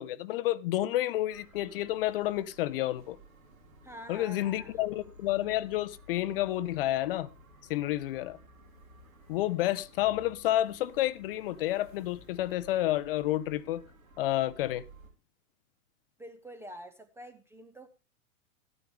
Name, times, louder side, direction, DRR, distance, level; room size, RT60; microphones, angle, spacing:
voice 1, 0.0-3.2 4.1-7.3 7.7-8.4 9.3-13.8 14.2-14.8, left 14 dB, 40° left, 0.5 m, -30 dB
sound 1, 1.3-15.1, equal, 75° right, 2.9 m, -55 dB
voice 2, 3.8-4.8 16.2-17.9, right 1 dB, 5° right, 0.5 m, -47 dB
13.0 x 9.6 x 3.5 m
figure-of-eight pair, 105°, 43 cm